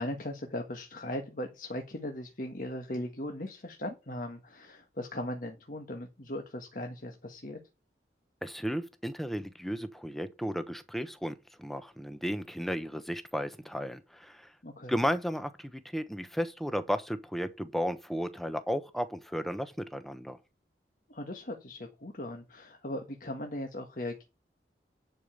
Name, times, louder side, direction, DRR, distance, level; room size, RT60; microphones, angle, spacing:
voice 1, 0.0-7.6 14.6-15.0 21.1-24.2, left 1 dB, 50° left, 1.5 m, -38 dB
voice 2, 8.4-14.5 14.9-20.4, equal, ahead, 1.0 m, -34 dB
11.0 x 5.0 x 6.7 m
head